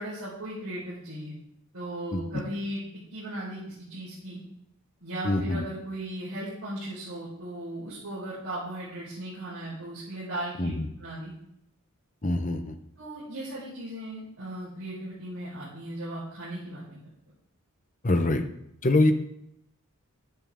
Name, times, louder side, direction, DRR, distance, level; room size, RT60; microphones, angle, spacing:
voice 1, 0.0-1.3 1.7-2.8 3.1-4.4 5.0-11.3 13.0-17.0, right 1 dB, 80° right, -9 dB, 4.6 m, -37 dB
voice 2, 2.1-2.4 5.2-5.6 10.6-10.9 12.2-12.8 18.0-18.4 18.8-19.1, left 2 dB, 35° left, 8 dB, 0.9 m, -24 dB
11.5 x 10.5 x 3.7 m, 0.76 s
head